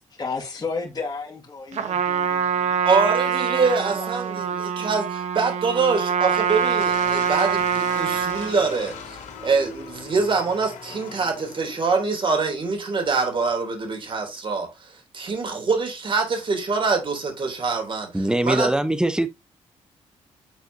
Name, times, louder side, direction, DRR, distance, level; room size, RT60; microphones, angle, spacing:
voice 1, 0.2-2.8 3.5-4.9, left 4 dB, 35° left, 2.2 m, -34 dB
Trumpet, 1.7-8.6, right 7 dB, 75° right, 1.0 m, -24 dB
voice 2, 2.8-18.1 18.4-18.7, right 4 dB, 45° right, 3.4 m, -24 dB
sound 1, 6.3-12.3, left 5 dB, 85° left, 2.0 m, -40 dB
voice 3, 18.1-19.3, right 1 dB, 5° right, 1.0 m, -22 dB
9.2 x 4.4 x 2.8 m
cardioid pair, 85°, 12 cm